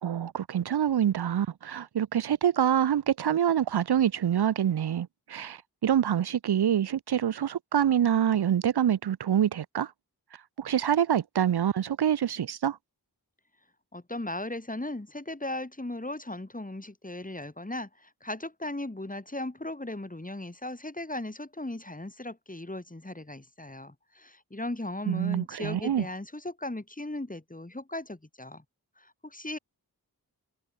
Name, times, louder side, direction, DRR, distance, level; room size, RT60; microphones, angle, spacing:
voice 1, 0.0-9.9 10.6-12.8 25.1-26.1, right 9 dB, 75° right, 0.6 m, -26 dB
voice 2, 13.9-28.6 29.0-29.6, left 1 dB, 20° left, 2.4 m, -37 dB
wide cardioid pair, 60°, 39 cm